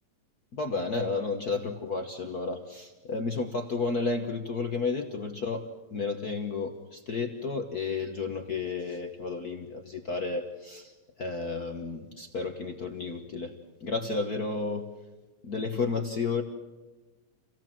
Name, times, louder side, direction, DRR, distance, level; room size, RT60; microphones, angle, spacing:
voice 1, 0.5-13.5 13.8-14.8 15.4-16.4, left 4 dB, 55° left, 4 dB, 1.1 m, -32 dB
27.5 x 17.0 x 7.5 m, 1.2 s
omnidirectional pair, 3.3 m